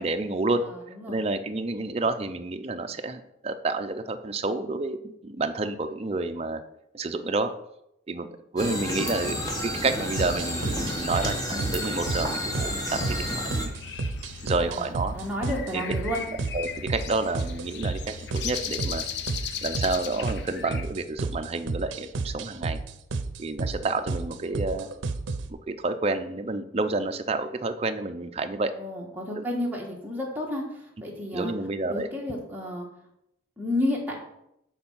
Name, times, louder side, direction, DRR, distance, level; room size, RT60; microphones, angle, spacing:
voice 1, 0.0-0.6 1.1-6.6 6.9-7.5 8.1-8.3 8.5-9.4 9.6-13.7 14.4-15.1 15.7-15.8 16.5-19.0 19.6-22.8 23.4-24.9 25.5-28.7 29.3-29.4 31.3-32.1, right 3 dB, 30° right, 8 dB, 0.5 m, -29 dB
voice 2, 0.6-1.2 14.6-14.9 15.1-16.2 28.8-30.6 31.0-31.5 31.9-32.9 33.6-34.2, left 1 dB, 10° right, -2 dB, 1.4 m, -31 dB
sound 1, 8.6-13.7, left 1 dB, 20° left, 1.2 m, -31 dB
sound 2, 10.2-25.5, right 3 dB, 80° right, 0.6 m, -33 dB
sound 3, 13.2-20.9, left 7 dB, 60° left, 0.5 m, -37 dB
7.0 x 4.3 x 5.6 m, 0.81 s
head